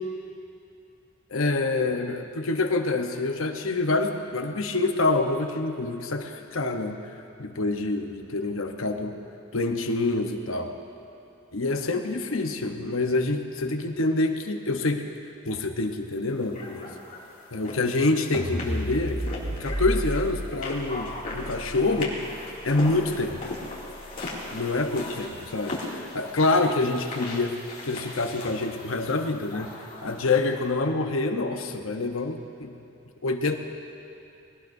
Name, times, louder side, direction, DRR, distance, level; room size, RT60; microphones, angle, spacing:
voice 1, 1.3-7.0 7.4-9.2 9.5-10.7 11.5-15.1 15.4-16.9 17.5-19.3 19.6-22.2 22.6-23.6 24.5-29.7 30.0-32.8 33.2-33.6, left 2 dB, 70° left, 5 dB, 1.0 m, -26 dB
sound 1, 16.5-30.6, left 2 dB, 40° left, 2.6 m, -39 dB
sound 2, 18.3-24.6, equal, 5° left, 2.7 m, -34 dB
21.0 x 18.0 x 2.7 m, 2.8 s
head